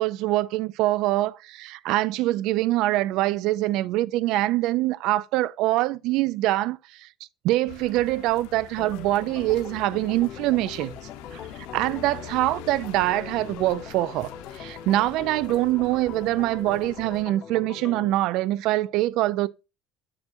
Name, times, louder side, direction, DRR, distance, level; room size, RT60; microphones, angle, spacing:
voice 1, 0.0-7.1 7.4-10.9 11.3-11.4 11.7-19.5, right 16 dB, 65° right, 0.3 m, -24 dB
sound 1, 7.7-17.2, left 8 dB, 85° left, 1.1 m, -44 dB
Organ, 8.8-18.1, left 8 dB, 50° left, 0.7 m, -41 dB
7.5 x 6.2 x 2.6 m
cardioid pair, 130°, 0 cm